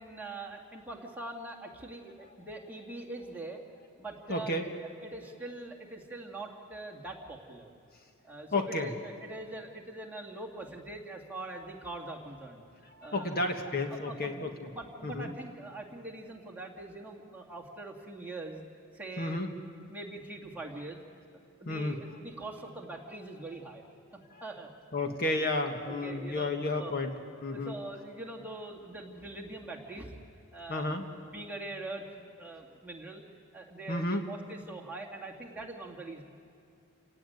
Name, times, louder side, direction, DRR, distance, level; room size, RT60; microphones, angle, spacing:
voice 1, 0.0-3.6 4.0-4.7 5.0-7.7 8.2-12.6 13.0-13.3 13.7-18.6 18.9-19.4 19.9-21.0 21.6-23.8 24.4-24.7 25.9-26.5 26.8-26.9 27.5-30.2 30.5-30.9 31.3-33.2 33.5-36.2, right 2 dB, 10° right, -2 dB, 2.3 m, -43 dB
voice 2, 4.3-4.7 8.5-8.9 12.9-14.7 15.0-15.3 19.2-19.5 21.6-22.0 24.9-27.1 27.4-27.7 30.7-31.0 33.9-34.2, left 2 dB, 45° left, 4 dB, 1.6 m, -32 dB
29.5 x 17.0 x 9.4 m, 2.4 s
head